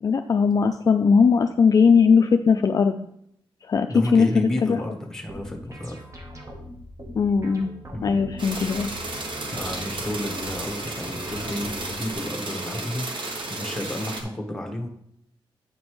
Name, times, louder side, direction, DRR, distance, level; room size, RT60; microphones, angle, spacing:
voice 1, 0.0-2.9 3.7-4.8 7.1-7.7 8.0-8.9, left 5 dB, 40° left, 6 dB, 0.3 m, -19 dB
voice 2, 3.9-6.0 7.9-8.2 9.5-14.9, left 1 dB, 5° left, 2 dB, 1.2 m, -31 dB
sound 1, 5.3-12.1, equal, 35° right, 1.1 m, -41 dB
sound 2, 8.4-14.2, right 2 dB, 60° right, 1.1 m, -33 dB
8.8 x 5.2 x 3.1 m, 0.73 s
wide cardioid pair, 115°, 9 cm